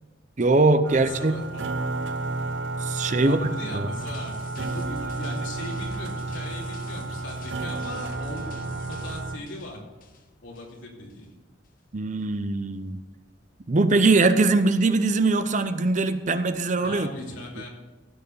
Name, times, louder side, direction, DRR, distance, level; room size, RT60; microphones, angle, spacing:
voice 1, 0.4-1.3 2.8-3.4 3.7-3.9 11.9-13.0 13.7-17.1, right 3 dB, 40° right, 11 dB, 0.6 m, -21 dB
sound 1, 0.8-9.4, right 3 dB, 75° right, 0.7 m, -32 dB
voice 2, 0.9-1.7 3.1-8.6 8.9-9.8 10.4-11.4 16.8-17.7, left 1 dB, 80° left, -1 dB, 2.8 m, -39 dB
sound 2, 4.0-10.8 11.1-11.2, left 2 dB, 45° left, 1.1 m, -45 dB
15.5 x 6.4 x 5.5 m, 1.2 s
head